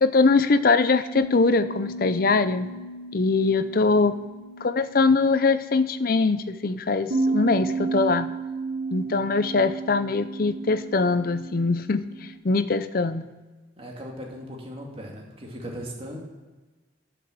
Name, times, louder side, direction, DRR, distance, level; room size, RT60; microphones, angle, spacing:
voice 1, 0.0-2.7 3.1-4.2 4.6-8.3 8.9-13.3, left 3 dB, 50° left, 13 dB, 0.6 m, -22 dB
sound 1, 1.1-5.7 7.1-12.4, right 3 dB, 55° right, 1.1 m, -33 dB
voice 2, 13.8-16.2, equal, 30° right, -1 dB, 2.2 m, -38 dB
12.0 x 6.0 x 7.1 m, 1.2 s
head